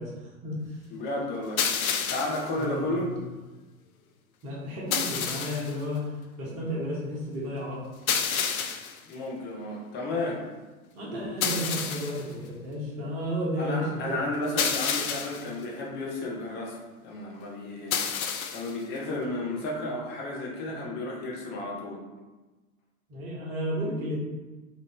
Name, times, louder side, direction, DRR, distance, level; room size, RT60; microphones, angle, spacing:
voice 1, 0.0-0.8 2.5-3.1 4.4-6.1 6.4-7.8 10.9-14.2 23.1-24.3, equal, 40° right, -5 dB, 1.3 m, -32 dB
voice 2, 0.9-1.6 2.1-3.1 9.1-10.4 13.6-18.0 18.3-22.0, left 2 dB, 25° left, -2 dB, 0.8 m, -33 dB
sound 1, 1.6-2.5 4.9-5.7 8.1-9.0 11.4-12.2 14.6-15.5 17.9-18.7, left 7 dB, 70° left, 0.5 m, -29 dB
3.4 x 2.5 x 3.3 m, 1.2 s
figure-of-eight pair, 100°, 45 cm